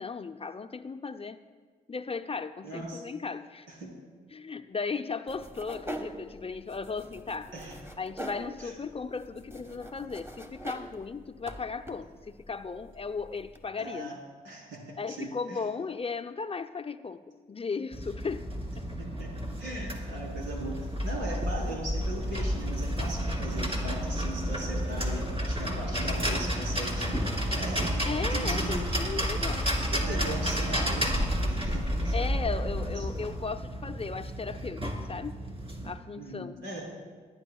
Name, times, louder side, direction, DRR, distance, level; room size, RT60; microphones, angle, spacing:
voice 1, 0.0-1.4 1.9-3.7 4.3-7.5 8.0-14.1 15.0-18.4 18.8-18.9 28.0-30.4 32.1-35.4 35.8-36.6, left 4 dB, 30° left, 9 dB, 0.7 m, -36 dB
voice 2, 2.6-3.0 3.7-3.9 7.5-7.8 8.6-8.7 13.8-14.2 14.4-15.6 19.0-19.3 19.6-28.8 29.8-32.2 32.8-33.1 36.2-36.8, right 1 dB, 80° right, -3 dB, 3.6 m, -39 dB
sound 1, 5.3-13.7, right 1 dB, 10° right, 1.6 m, -44 dB
sound 2, 17.9-35.9, equal, 30° right, 2.9 m, -31 dB
22.0 x 9.7 x 2.4 m, 1.5 s
hypercardioid pair, 40°, 20 cm